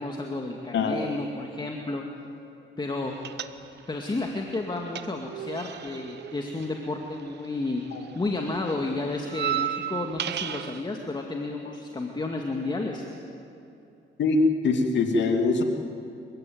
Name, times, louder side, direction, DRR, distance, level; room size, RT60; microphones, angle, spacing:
voice 1, 0.0-2.0 2.8-3.1 3.9-7.8 8.1-13.1, left 2 dB, 20° left, 2 dB, 2.2 m, -31 dB
sound 1, 3.2-4.0 4.3-7.7 7.9-10.8, right 10 dB, 60° right, 1.0 m, -34 dB
voice 2, 14.6-15.6, left 4 dB, 65° left, 4 dB, 2.8 m, -23 dB
27.5 x 16.0 x 9.5 m, 2.7 s
cardioid pair, 90°, 20 cm